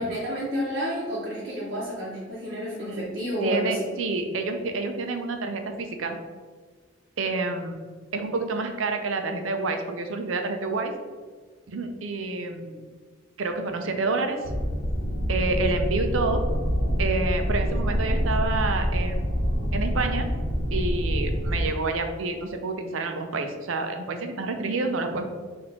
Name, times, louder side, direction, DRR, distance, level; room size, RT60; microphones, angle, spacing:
voice 1, 0.0-3.8, equal, 50° right, -8 dB, 1.0 m, -30 dB
voice 2, 3.4-6.2 7.2-7.8 8.1-10.9 11.7-12.7 13.4-14.4 15.3-16.4 17.0-19.2 19.7-20.3 20.7-25.3, right 3 dB, 85° right, 5 dB, 0.5 m, -28 dB
sound 1, 14.4-21.7, equal, 75° left, 0.8 m, -26 dB
4.2 x 2.6 x 4.3 m, 1.5 s
head